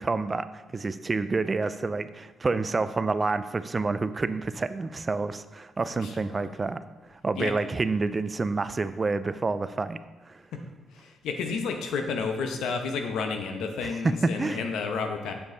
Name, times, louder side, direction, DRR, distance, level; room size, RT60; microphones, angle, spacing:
voice 1, 0.0-10.0 10.3-10.4 13.8-14.6, right 3 dB, 30° right, 13 dB, 0.4 m, -28 dB
voice 2, 10.9-15.3, left 5 dB, 80° left, 5 dB, 0.9 m, -31 dB
7.1 x 6.8 x 3.9 m, 1.2 s
cardioid pair, 90°, 0 cm